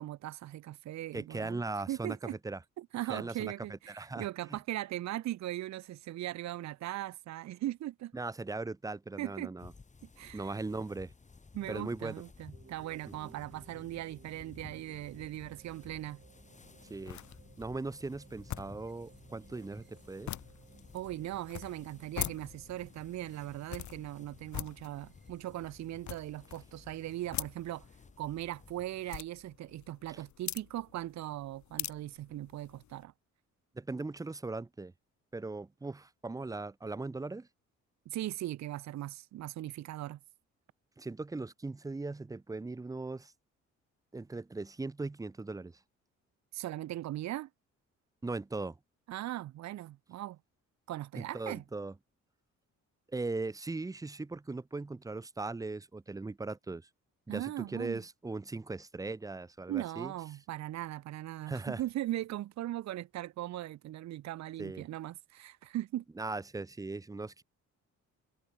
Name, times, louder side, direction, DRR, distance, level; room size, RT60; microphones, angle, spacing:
voice 1, 0.0-2.4 2.8-8.1 9.2-9.5 10.2-10.5 11.5-16.2 20.9-27.9 28.2-33.1 38.1-40.2 46.5-47.5 49.1-50.4 50.9-51.6 57.3-58.0 59.7-66.0, right 14 dB, 65° right, 0.7 m, -39 dB
voice 2, 1.1-2.6 3.1-4.6 8.1-9.7 10.3-11.1 11.7-12.1 13.2-13.4 16.9-17.2 17.6-20.3 30.1-30.2 33.7-34.9 35.3-37.5 41.0-43.3 44.1-45.7 48.2-48.8 51.2-51.9 53.1-56.8 57.3-60.1 61.5-61.8 64.6-64.8 66.2-67.4, right 3 dB, 10° right, 0.6 m, -39 dB
sound 1, 9.6-29.2, left 4 dB, 25° left, 2.4 m, -56 dB
sound 2, 12.5-26.0, right 5 dB, 35° right, 3.2 m, -61 dB
Cutter picking up juggle., 16.5-33.0, left 12 dB, 70° left, 2.3 m, -45 dB
cardioid pair, 90°, 30 cm